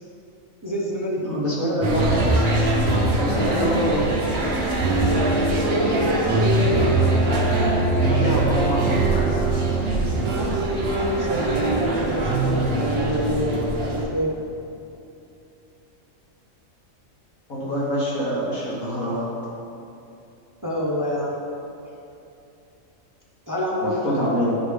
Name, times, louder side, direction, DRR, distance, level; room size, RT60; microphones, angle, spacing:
voice 1, 0.6-1.4 5.6-6.7 10.7-14.4 20.6-21.4 23.5-24.5, equal, 20° right, -4 dB, 0.6 m, -27 dB
voice 2, 1.2-2.3 3.1-4.1 6.7-6.9 7.9-9.3 17.5-19.3 23.8-24.6, equal, 75° left, -7 dB, 1.9 m, -25 dB
sound 1, 1.8-14.0, right 2 dB, 50° right, 1.0 m, -22 dB
10.5 x 4.9 x 3.3 m, 2.7 s
omnidirectional pair, 1.4 m